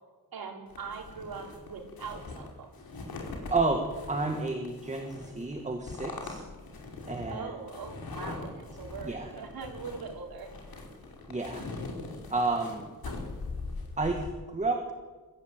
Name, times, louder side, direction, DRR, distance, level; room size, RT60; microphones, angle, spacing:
voice 1, 0.3-2.7 7.3-10.7, right 5 dB, 75° right, 1 dB, 4.6 m, -41 dB
sound 1, 0.7-14.3, left 3 dB, 75° left, 5.0 m, -41 dB
voice 2, 4.1-6.4 7.1-7.5 9.0-9.3 11.3-11.7 12.3-12.9 14.0-14.8, right 3 dB, 20° right, 4 dB, 2.0 m, -30 dB
23.0 x 15.5 x 9.2 m, 1.4 s
wide cardioid pair, 160°, 36 cm